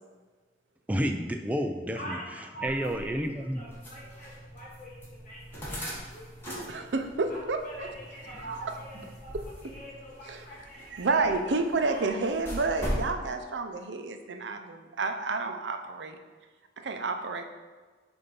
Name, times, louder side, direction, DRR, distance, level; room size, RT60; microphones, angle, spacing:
voice 1, 0.9-2.2 2.6-3.7, equal, 10° right, 5 dB, 0.3 m, -30 dB
voice 2, 1.9-6.3 6.6-6.9 7.3-9.3 9.6-12.1, right 1 dB, 45° left, -5 dB, 1.7 m, -44 dB
sound 1, 2.6-13.1, equal, 15° left, 1.6 m, -41 dB
voice 3, 6.7-7.9 8.5-8.7 10.3-10.4 10.9-16.2 16.8-17.4, right 3 dB, 80° right, 6 dB, 0.6 m, -30 dB
6.8 x 2.7 x 5.3 m, 1.4 s
head